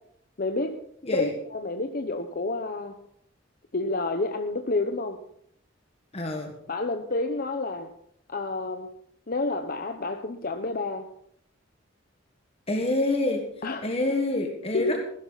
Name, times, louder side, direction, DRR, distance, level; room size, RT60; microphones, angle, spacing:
voice 1, 0.4-0.7 1.1-3.0 3.7-5.2 6.7-7.9 8.3-8.9 9.3-11.1 13.6-13.8 14.7-15.0, left 2 dB, 50° left, 5 dB, 0.9 m, -29 dB
voice 2, 1.0-1.3 6.1-6.6 12.7-13.4 13.8-15.1, left 2 dB, 30° left, 2 dB, 1.7 m, -27 dB
15.5 x 13.0 x 4.1 m, 0.71 s
head